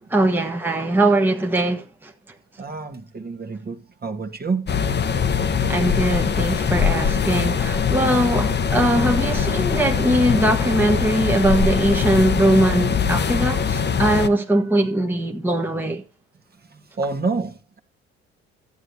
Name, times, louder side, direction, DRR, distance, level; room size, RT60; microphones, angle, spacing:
voice 1, 0.1-2.1 5.7-16.0, right 1 dB, 5° right, 1.3 m, -21 dB
voice 2, 2.6-4.7 16.7-17.8, right 4 dB, 30° right, 1.6 m, -28 dB
sound 1, 4.7-14.3, left 6 dB, 35° left, 1.0 m, -22 dB
13.5 x 9.2 x 2.8 m
hypercardioid pair, 55°, 31 cm